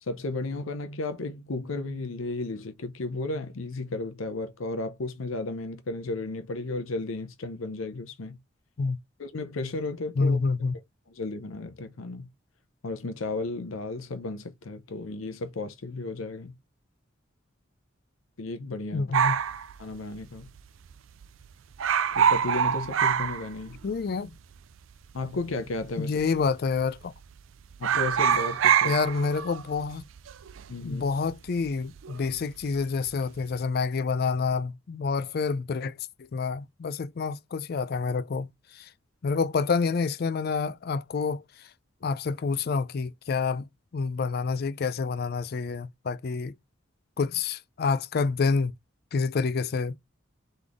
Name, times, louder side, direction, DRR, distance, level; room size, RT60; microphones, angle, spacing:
voice 1, 0.0-8.4 9.2-10.4 11.1-12.3 12.8-16.5 18.4-19.1 19.8-20.5 22.1-23.8 25.1-26.2 27.8-28.9 30.7-31.1, left 2 dB, 80° left, 0.7 m, -34 dB
voice 2, 10.2-10.7 18.9-19.4 23.8-24.4 26.0-27.1 28.8-30.0 30.8-38.9 39.2-41.7 42.0-43.7 43.9-46.5 47.2-48.7 49.1-50.0, left 4 dB, 50° left, 0.4 m, -28 dB
sound 1, 19.1-20.6 20.9-21.0 21.2-21.5 21.7-24.0 24.3-24.4 25.2-25.8 26.2-26.4 26.7-27.4 27.7-32.3 32.6-33.1, right 8 dB, 75° right, 0.4 m, -26 dB
4.0 x 3.3 x 3.5 m
head